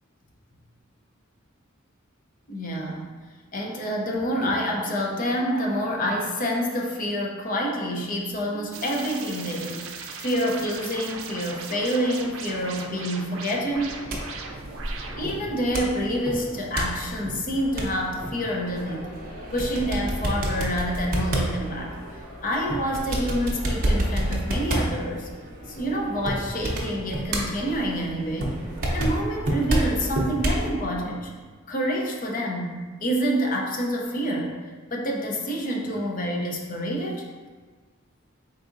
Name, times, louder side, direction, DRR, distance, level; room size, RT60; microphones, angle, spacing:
voice 1, 2.5-3.0 3.5-13.9 15.2-19.1 19.5-22.0 22.4-25.3 25.7-28.6 28.9-31.3 31.7-34.6 34.9-37.3, equal, 40° left, 0 dB, 0.5 m, -27 dB
sound 1, 8.7-15.5, right 4 dB, 90° right, 0.4 m, -38 dB
sound 2, 13.7-30.7, right 1 dB, 45° right, 0.6 m, -30 dB
4.0 x 3.6 x 2.5 m, 1.5 s
head